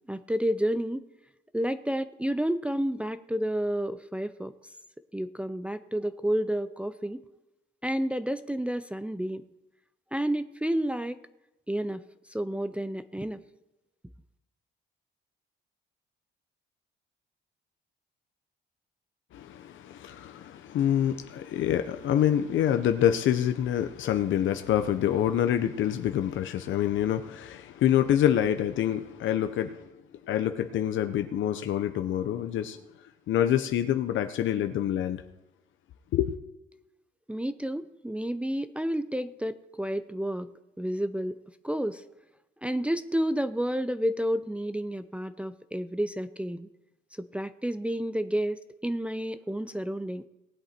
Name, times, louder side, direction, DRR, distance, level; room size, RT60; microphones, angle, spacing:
voice 1, 0.1-1.0 1.5-4.5 5.1-7.2 7.8-9.4 10.1-11.2 11.7-12.0 12.3-13.4 37.3-40.5 40.8-41.4 41.6-42.0 42.6-46.7 47.2-50.2, equal, 5° right, 0.6 m, -30 dB
voice 2, 19.3-29.9 30.3-32.8 33.3-35.2 36.1-36.3, left 10 dB, 75° left, 0.8 m, -26 dB
19.0 x 7.9 x 4.4 m
cardioid pair, 90°, 20 cm